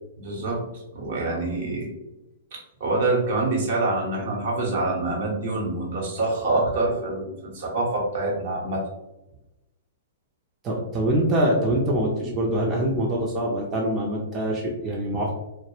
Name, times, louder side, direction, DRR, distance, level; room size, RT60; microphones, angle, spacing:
voice 1, 0.2-1.9 2.5-8.8, right 2 dB, 60° right, -1 dB, 0.9 m, -26 dB
voice 2, 10.6-15.4, right 1 dB, 25° right, -3 dB, 0.5 m, -24 dB
2.2 x 2.0 x 3.0 m, 0.95 s
hypercardioid pair, 125°, 0 cm